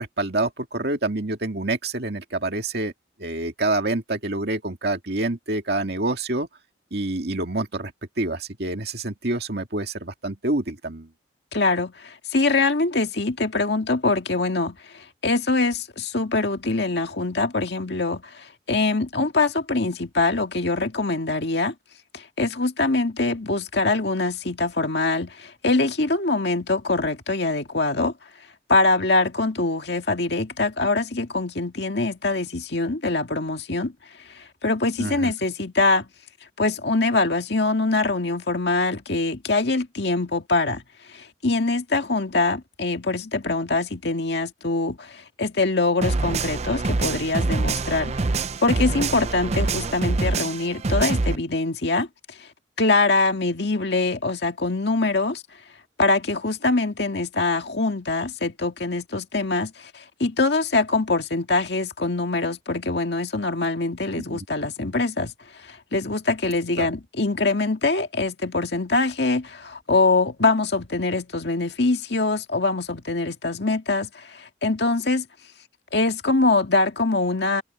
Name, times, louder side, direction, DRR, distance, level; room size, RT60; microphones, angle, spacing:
voice 1, 0.0-2.9 3.2-6.5 6.9-11.1 35.0-35.3 64.3-64.5 66.8-66.9, right 2 dB, 60° right, 2.3 m, -27 dB
voice 2, 11.5-21.7 22.1-28.1 28.7-33.9 34.3-36.1 36.6-40.8 41.1-52.1 52.4-52.5 52.8-55.4 56.0-75.3 75.9-77.6, left 3 dB, 65° left, 2.0 m, -23 dB
sound 1, 46.0-51.4, right 3 dB, 35° right, 0.6 m, -25 dB
head